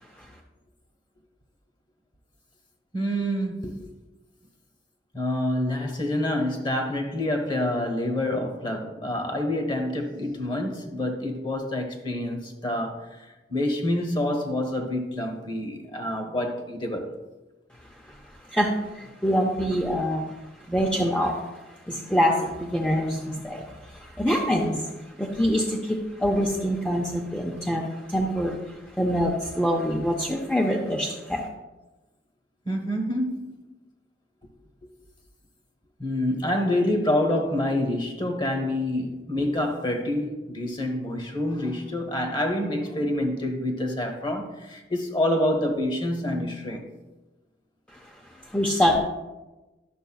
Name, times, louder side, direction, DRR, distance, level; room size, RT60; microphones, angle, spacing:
voice 1, 2.9-3.8 5.1-17.1 32.6-33.6 34.8-34.9 36.0-46.8, left 1 dB, 25° left, 1.0 m, -27 dB
voice 2, 18.1-20.3 20.6-31.5 47.9-48.2 48.4-49.0, equal, 5° left, 0.5 m, -25 dB
11.0 x 6.4 x 2.3 m
head